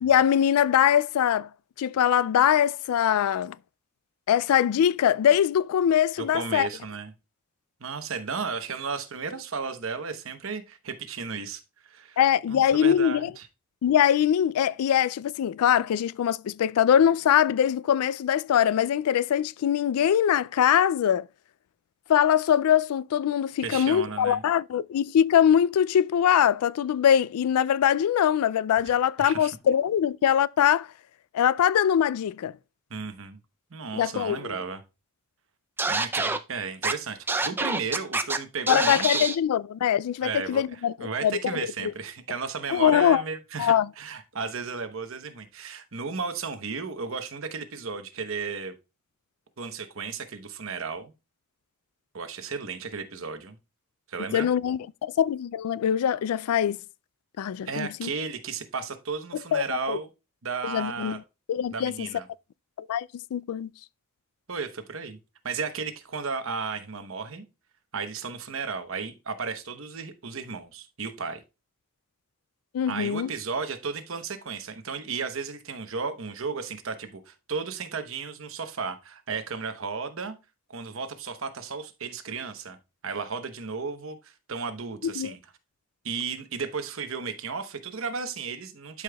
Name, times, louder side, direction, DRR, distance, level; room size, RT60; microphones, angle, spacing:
voice 1, 0.0-1.5 1.8-3.6 4.3-6.7 12.2-13.3 13.8-21.3 22.1-30.9 31.3-32.5 33.9-34.4 38.7-41.9 42.7-43.2 43.6-43.9 54.3-56.8 57.4-58.1 59.5-60.0 60.6-61.2 61.5-62.1 62.8-63.7 72.7-73.3 85.0-85.3, left 9 dB, 80° left, 0.3 m, -23 dB
voice 2, 6.3-7.1 7.8-12.2 12.5-13.5 23.6-24.4 29.2-29.5 32.9-33.4 33.7-34.8 35.9-39.3 40.2-48.7 49.6-51.1 52.1-53.6 54.1-54.5 57.7-60.1 60.4-61.2 61.7-62.3 64.5-65.2 65.4-67.5 67.9-71.4 72.9-80.4 80.7-82.8 83.0-85.4 86.0-89.0, right 5 dB, 60° right, 1.0 m, -34 dB
Scratching (performance technique), 35.8-36.4 36.8-36.9 37.3-38.4 38.7-39.4, right 3 dB, 10° right, 0.4 m, -26 dB
11.5 x 5.0 x 2.3 m
head